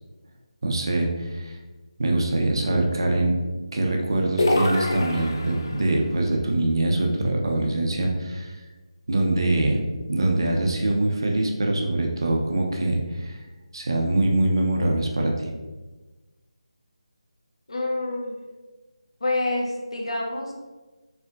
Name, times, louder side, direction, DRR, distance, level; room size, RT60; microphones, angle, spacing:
voice 1, 0.6-1.5 2.0-3.3 3.7-8.5 9.1-9.8 10.1-13.4 13.7-15.5, right 2 dB, 45° right, 1 dB, 0.6 m, -23 dB
sound 1, 4.4-5.9, left 1 dB, 35° left, 0.3 m, -25 dB
voice 2, 17.7-18.3 19.2-20.5, left 2 dB, 60° left, -1 dB, 0.9 m, -27 dB
4.4 x 3.4 x 2.4 m, 1.2 s
figure-of-eight pair, 180°, 3 cm